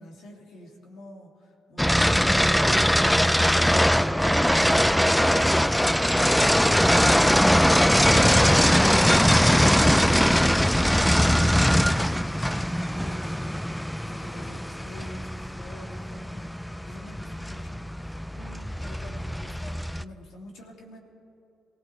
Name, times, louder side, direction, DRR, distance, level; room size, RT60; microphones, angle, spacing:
voice 1, 0.0-3.3 3.7-21.0, left 1 dB, 80° left, 0 dB, 2.6 m, -47 dB
sound 1, 1.8-20.0, equal, 5° left, 0.3 m, -21 dB
23.5 x 17.0 x 3.3 m, 2.8 s
cardioid pair, 90°, 0 cm